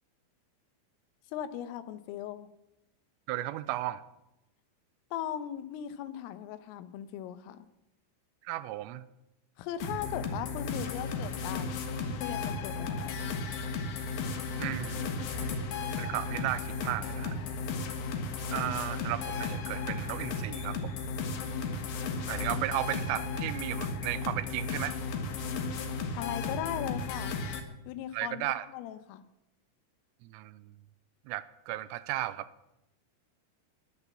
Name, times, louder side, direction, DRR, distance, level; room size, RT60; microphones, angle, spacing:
voice 1, 1.3-2.5 5.1-7.7 9.6-13.4 26.2-27.3 27.9-29.2, left 11 dB, 85° left, 12 dB, 3.6 m, -38 dB
voice 2, 3.3-4.0 8.4-9.0 14.6-15.3 16.0-17.4 18.5-21.0 22.3-25.0 28.1-28.7 30.2-30.7 31.3-32.5, right 15 dB, 85° right, 15 dB, 3.3 m, -35 dB
sound 1, 9.8-27.6, left 4 dB, 60° left, 2.5 m, -34 dB
20.5 x 8.3 x 7.2 m, 0.89 s
omnidirectional pair, 5.8 m